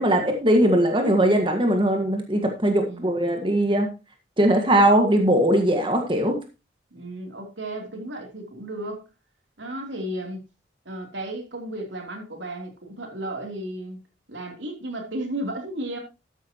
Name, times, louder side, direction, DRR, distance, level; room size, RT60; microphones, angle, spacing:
voice 1, 0.0-3.9 4.4-6.4, right 1 dB, 25° right, 1.7 m, -20 dB
voice 2, 2.9-3.4 6.9-9.1 9.6-10.4 10.8-14.0 14.3-16.0, right 1 dB, 80° right, 3.3 m, -34 dB
13.0 x 10.0 x 3.0 m
head